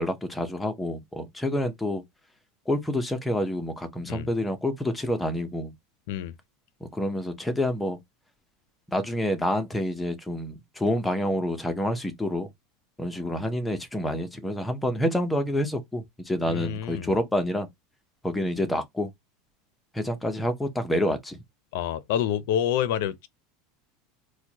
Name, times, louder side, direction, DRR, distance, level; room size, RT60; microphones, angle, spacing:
voice 1, 0.0-2.0 2.7-5.7 6.8-8.0 8.9-12.5 13.0-17.7 18.2-19.1 19.9-21.4, left 1 dB, 5° left, 0.6 m, -28 dB
voice 2, 16.4-17.1 21.7-23.3, left 10 dB, 70° left, 0.5 m, -28 dB
4.5 x 2.1 x 2.8 m
supercardioid pair, 155°, 0 cm